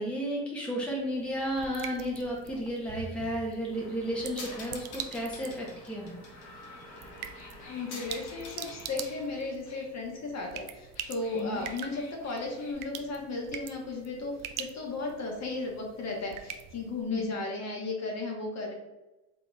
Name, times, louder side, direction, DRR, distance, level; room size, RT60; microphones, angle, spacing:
voice 1, 0.0-6.2 11.3-11.6 17.1-17.3, equal, 5° left, -3 dB, 0.9 m, -33 dB
sound 1, 0.8-17.3, right 9 dB, 50° right, 0.5 m, -45 dB
sound 2, 3.7-9.9 10.8-12.7, left 3 dB, 60° left, 1.3 m, -48 dB
voice 2, 7.6-18.7, left 3 dB, 40° left, 0 dB, 1.2 m, -35 dB
4.1 x 3.5 x 2.4 m, 1.0 s
hypercardioid pair, 70°, 43 cm